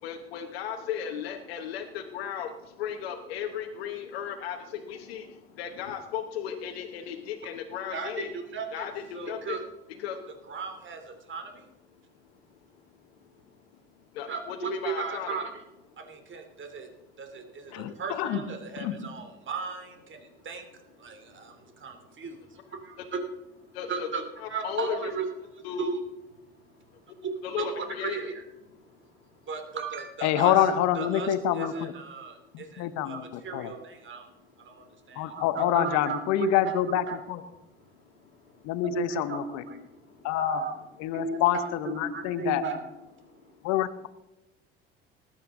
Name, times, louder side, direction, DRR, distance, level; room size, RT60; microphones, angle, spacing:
voice 1, 0.0-8.3 8.7-9.6 10.0-10.4 12.7-12.8 14.1-15.4 21.3-21.4 23.0-23.1 23.7-24.1 24.4-25.1 25.6-25.9 27.1-27.2 27.4-28.2 38.2-38.7 40.0-40.3, left 8 dB, 80° left, 4 dB, 1.2 m, -36 dB
voice 2, 7.9-8.9 9.1-9.6 10.5-11.6 14.3-15.5 16.0-16.9 17.2-20.7 21.0-23.2 23.9-25.2 25.8-26.0 27.2-28.4 29.5-34.3 34.6-37.2 38.8-39.8 40.4-40.8 41.1-42.8, right 4 dB, 40° right, 5 dB, 3.0 m, -35 dB
voice 3, 17.7-18.4 18.8-19.0 30.2-31.9 32.5-33.7 35.2-37.4 38.6-39.6 40.2-40.6 41.0-42.6 43.6-44.1, left 14 dB, 60° left, 15 dB, 0.9 m, -27 dB
19.0 x 9.1 x 3.8 m, 1.0 s
hypercardioid pair, 60°, 30 cm